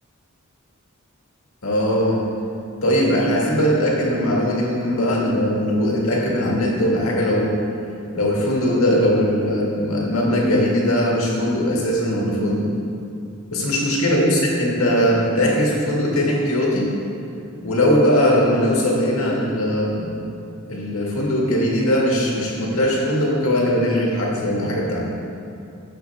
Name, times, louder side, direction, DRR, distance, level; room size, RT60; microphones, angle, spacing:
voice 1, 1.6-2.2 2.8-7.6 8.1-12.7 13.5-16.9 17.6-20.2 20.7-25.0, equal, 80° left, -3 dB, 1.9 m, -20 dB
13.5 x 5.9 x 3.5 m, 2.6 s
head